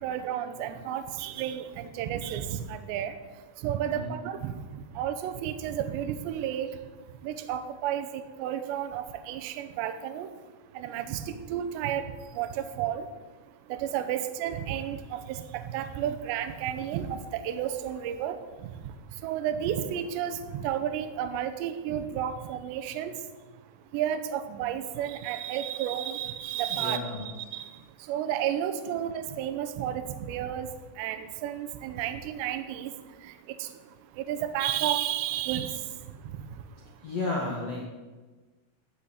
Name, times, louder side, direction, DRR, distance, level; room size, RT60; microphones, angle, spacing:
voice 1, 0.0-3.1 3.6-4.5 5.0-6.7 7.2-10.3 10.8-12.1 12.4-13.1 13.7-18.4 19.2-23.1 23.9-27.7 28.1-30.7 31.0-32.9 34.3-35.8, right 10 dB, 75° right, 10 dB, 2.8 m, -32 dB
voice 2, 26.7-27.3 37.0-37.9, left 2 dB, 60° left, -4 dB, 1.7 m, -33 dB
14.5 x 6.5 x 8.5 m, 1.3 s
omnidirectional pair, 5.7 m